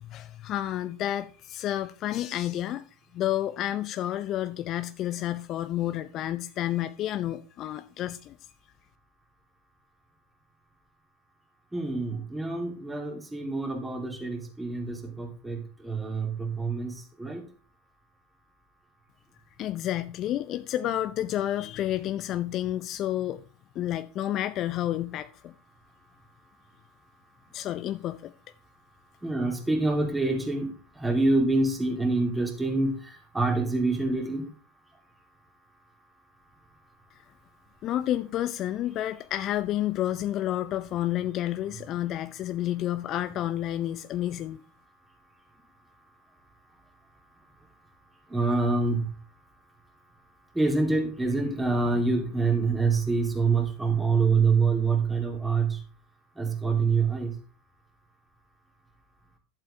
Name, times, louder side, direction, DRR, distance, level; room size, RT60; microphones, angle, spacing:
voice 1, 0.0-2.8 3.1-8.4 19.6-23.4 23.7-25.5 27.5-28.3 37.8-44.6, left 13 dB, 45° left, 0.5 m, -30 dB
voice 2, 11.7-17.4 29.2-34.5 48.3-49.1 50.5-55.8 56.4-57.3, right 3 dB, 10° right, 2.8 m, -26 dB
11.5 x 7.5 x 3.3 m
hypercardioid pair, 90°, 0 cm